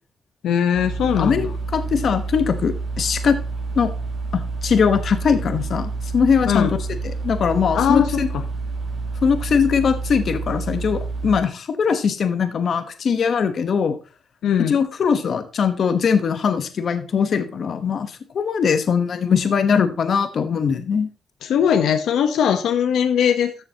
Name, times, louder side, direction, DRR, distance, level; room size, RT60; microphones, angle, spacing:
voice 1, 0.4-1.5 6.5-6.7 7.7-8.4 14.4-14.8 21.4-23.6, left 8 dB, 80° left, 8 dB, 0.9 m, -20 dB
sound 1, 0.7-11.4, right 3 dB, 35° right, 2.3 m, -28 dB
voice 2, 1.7-3.4 3.8-3.9 4.3-6.7 7.0-8.3 9.2-14.0 14.6-21.1, left 6 dB, 50° left, 9 dB, 1.1 m, -21 dB
13.5 x 6.9 x 2.9 m, 0.35 s
cardioid pair, 155°, 0 cm